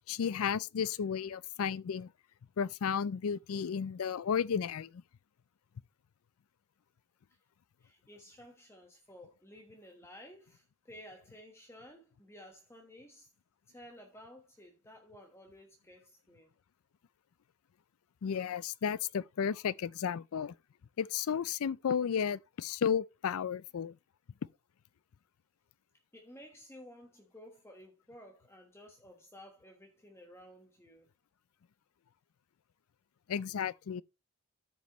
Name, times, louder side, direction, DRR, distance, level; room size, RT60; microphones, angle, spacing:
voice 1, 0.1-2.1 2.6-5.0 18.2-20.5 21.0-24.0 33.3-34.0, left 7 dB, 70° left, 0.4 m, -33 dB
voice 2, 7.8-13.3 13.7-16.5 26.1-31.1, equal, 10° left, 1.2 m, -54 dB
13.5 x 5.3 x 3.0 m
head